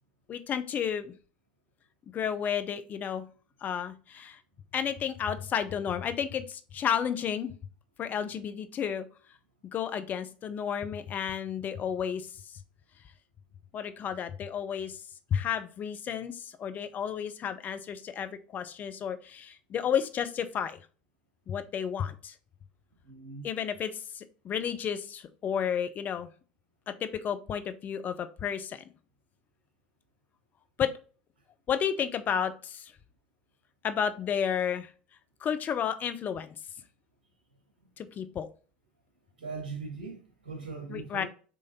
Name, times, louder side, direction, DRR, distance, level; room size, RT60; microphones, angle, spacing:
voice 1, 0.3-1.1 2.1-3.2 3.6-4.4 4.7-7.5 8.0-9.1 9.7-12.3 13.7-15.0 15.3-20.8 21.5-22.3 23.4-26.3 27.0-28.8 30.8-30.9 31.7-32.9 33.8-34.9 35.4-36.6 38.0-38.5 40.9-41.2, left 8 dB, 35° left, 0.6 m, -32 dB
voice 2, 23.0-23.5 39.4-41.2, right 4 dB, 80° right, 1.3 m, -40 dB
5.4 x 3.2 x 2.7 m
hypercardioid pair, 75°, 5 cm